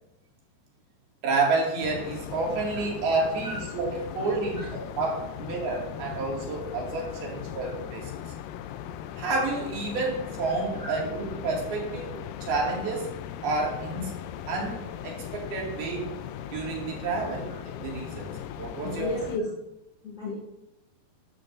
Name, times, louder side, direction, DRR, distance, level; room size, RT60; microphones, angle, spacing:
voice 1, 1.2-8.1 9.2-13.1 13.4-14.1 14.5-16.2 16.5-18.3 18.6-19.1, right 3 dB, 75° right, -1 dB, 4.3 m, -30 dB
sound 1, 1.8-19.4, left 10 dB, 80° left, 2.1 m, -39 dB
voice 2, 18.8-19.5 20.0-20.3, left 1 dB, 25° left, -6 dB, 2.9 m, -33 dB
13.5 x 12.5 x 2.7 m, 0.92 s
omnidirectional pair, 4.5 m